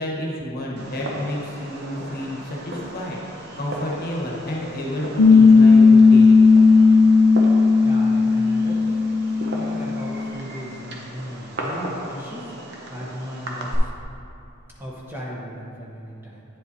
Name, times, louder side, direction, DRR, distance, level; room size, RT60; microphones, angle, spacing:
voice 1, 0.0-6.7, left 1 dB, 45° left, -3 dB, 1.1 m, -30 dB
Fireworks, 0.8-13.8, right 1 dB, 50° right, 0.9 m, -36 dB
Piano, 5.2-10.3, left 4 dB, 60° left, 0.4 m, -14 dB
voice 2, 7.8-9.1 9.5-13.9 14.8-16.6, equal, 10° right, -5 dB, 1.0 m, -36 dB
9.4 x 7.2 x 2.8 m, 2.6 s
head